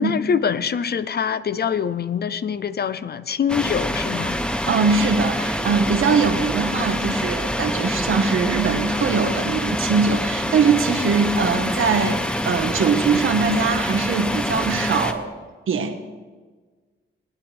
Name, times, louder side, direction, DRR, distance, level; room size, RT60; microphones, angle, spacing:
voice 1, 0.0-4.4, left 7 dB, 50° left, 15 dB, 0.5 m, -24 dB
sound 1, 3.5-15.1, equal, 5° left, 0.9 m, -26 dB
voice 2, 4.7-15.3 15.7-15.9, right 5 dB, 80° right, 6 dB, 1.4 m, -21 dB
sound 2, 4.9-15.1, right 3 dB, 50° right, 2.6 m, -45 dB
19.0 x 11.0 x 3.5 m, 1.4 s
cardioid pair, 90°, 21 cm